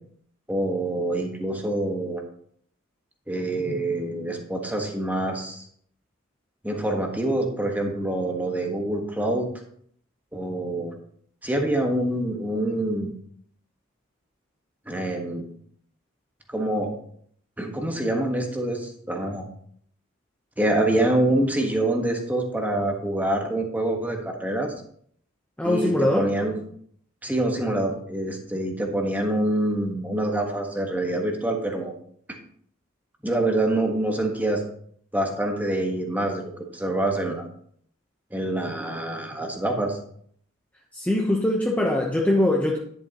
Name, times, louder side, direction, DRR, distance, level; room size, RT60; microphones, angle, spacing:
voice 1, 0.5-2.2 3.3-5.6 6.6-9.5 10.3-10.9 11.4-13.1 14.9-15.4 16.5-16.9 17.6-19.4 20.6-24.7 25.6-26.6 27.2-31.9 32.3-32.4 33.2-34.6 35.1-36.4 36.7-37.5 38.3-40.0, right 1 dB, 10° right, 2 dB, 1.3 m, -26 dB
voice 2, 25.6-26.3 40.9-42.8, left 1 dB, 5° left, -2 dB, 0.8 m, -22 dB
10.5 x 7.7 x 2.9 m, 0.62 s
head